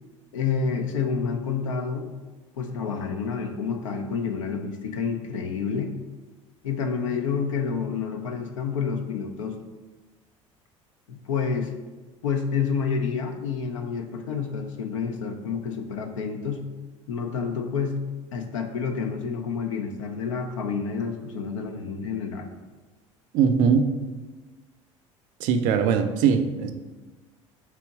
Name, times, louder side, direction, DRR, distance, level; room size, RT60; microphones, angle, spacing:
voice 1, 0.3-2.1 2.5-5.9 6.6-9.6 11.1-11.7 12.2-16.6 17.1-18.0 18.3-22.5, left 6 dB, 80° left, 5 dB, 0.5 m, -29 dB
voice 2, 23.3-23.9 25.4-26.7, right 6 dB, 60° right, 7 dB, 0.5 m, -21 dB
3.4 x 2.9 x 4.7 m, 1.2 s
hypercardioid pair, 65°, 16 cm